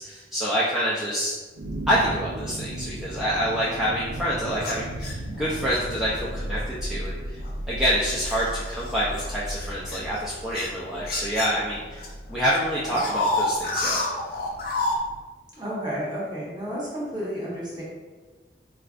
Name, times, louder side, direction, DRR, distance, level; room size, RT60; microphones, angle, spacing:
voice 1, 0.0-1.3 1.9-7.4 7.7-14.0, equal, ahead, -8 dB, 0.3 m, -27 dB
sound 1, 1.5-15.2, right 1 dB, 80° right, 0.4 m, -36 dB
sound 2, 4.6-5.8 6.6-6.8 7.4-12.1 12.3-15.0, left 2 dB, 55° left, 0.5 m, -30 dB
voice 2, 15.5-17.8, equal, 25° right, -6 dB, 0.9 m, -31 dB
4.4 x 2.4 x 2.3 m, 1.3 s
head